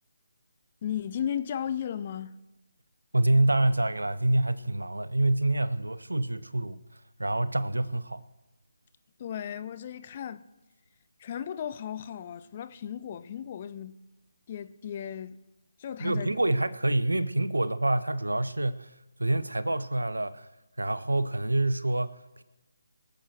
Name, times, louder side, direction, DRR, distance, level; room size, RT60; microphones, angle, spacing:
voice 1, 0.8-2.3 9.2-10.5 11.2-14.0 14.5-15.4 15.8-16.3, left 9 dB, 30° left, 0.7 m, -35 dB
voice 2, 3.1-6.8 7.2-8.2 16.0-18.9 19.2-20.5 20.8-22.4, right 2 dB, 75° right, 0.8 m, -27 dB
23.5 x 8.0 x 4.6 m
figure-of-eight pair, 150°, 0 cm